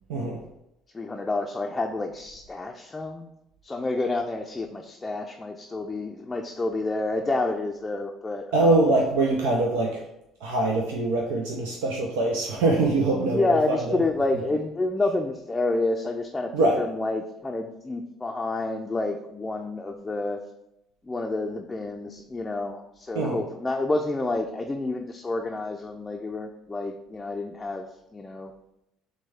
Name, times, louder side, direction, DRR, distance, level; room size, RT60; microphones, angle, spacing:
voice 1, 0.1-0.4 8.5-10.0 10.4-14.0 16.5-16.8 23.1-23.4, right 2 dB, 75° right, -1 dB, 0.5 m, -23 dB
voice 2, 0.9-3.3 3.6-8.8 13.1-20.4 21.0-28.5, left 2 dB, 20° left, 2 dB, 0.4 m, -29 dB
6.0 x 2.2 x 3.5 m, 0.83 s
hypercardioid pair, 60°, 0 cm